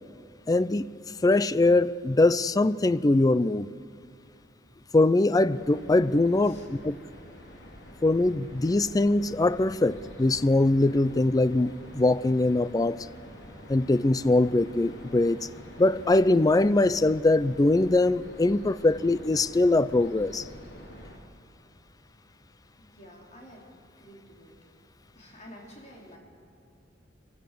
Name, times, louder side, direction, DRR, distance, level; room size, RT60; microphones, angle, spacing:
voice 1, 0.5-0.9 1.2-3.7 4.9-7.0 8.0-13.1 13.7-15.5 15.8-20.5, left 2 dB, 20° left, 0.4 m, -22 dB
sound 1, 5.5-21.2, equal, 80° left, 2.8 m, -47 dB
voice 2, 22.8-23.7 24.0-24.6 25.1-26.2, equal, 40° left, 4.1 m, -50 dB
24.0 x 16.0 x 7.8 m
head